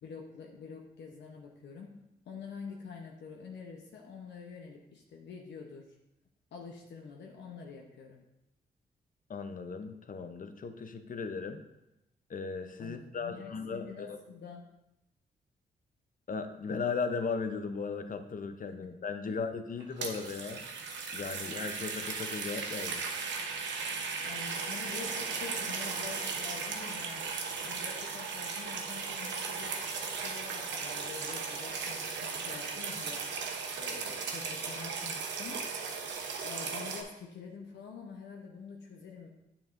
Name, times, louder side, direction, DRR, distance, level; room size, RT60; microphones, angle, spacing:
voice 1, 0.0-1.9 2.3-5.9 6.5-8.2 12.8-14.7 18.8-18.9 19.3-19.4 24.2-27.3 27.6-29.8 30.1-33.3 33.8-36.0 36.4-39.3, left 5 dB, 80° left, 0 dB, 0.8 m, -46 dB
voice 2, 9.3-11.6 12.3-14.2 16.3-20.6 21.1-23.0, left 5 dB, 50° left, 8 dB, 0.7 m, -37 dB
sound 1, 19.8-37.0, right 5 dB, 85° right, 0.9 m, -37 dB
8.7 x 7.1 x 2.6 m, 0.89 s
cardioid pair, 65°, 18 cm